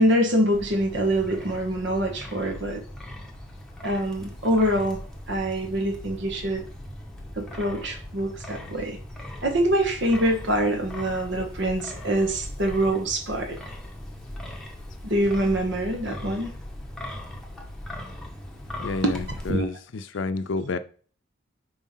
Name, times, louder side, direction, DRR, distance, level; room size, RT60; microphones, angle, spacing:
voice 1, 0.0-2.8 3.8-5.0 5.3-6.6 7.4-9.0 9.4-13.6 15.0-16.5 19.0-19.2 19.5-19.7, right 1 dB, 65° right, 1.2 m, -24 dB
Wind, 0.5-19.5, left 1 dB, 5° left, 1.0 m, -39 dB
voice 2, 18.8-20.8, left 3 dB, 75° left, 0.5 m, -30 dB
4.8 x 3.6 x 5.6 m
head